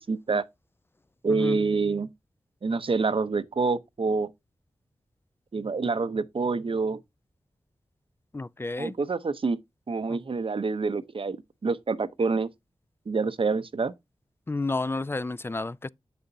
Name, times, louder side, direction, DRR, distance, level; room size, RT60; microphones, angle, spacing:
voice 1, 0.1-0.4 1.2-2.1 2.6-4.3 5.5-7.0 8.8-9.6 9.9-11.4 11.6-12.5 13.1-13.9, right 4 dB, 55° right, 0.7 m, -27 dB
voice 2, 1.3-1.6 8.3-9.0 10.1-10.2 14.5-15.9, left 2 dB, 20° left, 0.3 m, -31 dB
7.8 x 6.8 x 2.6 m
cardioid pair, 45°, 11 cm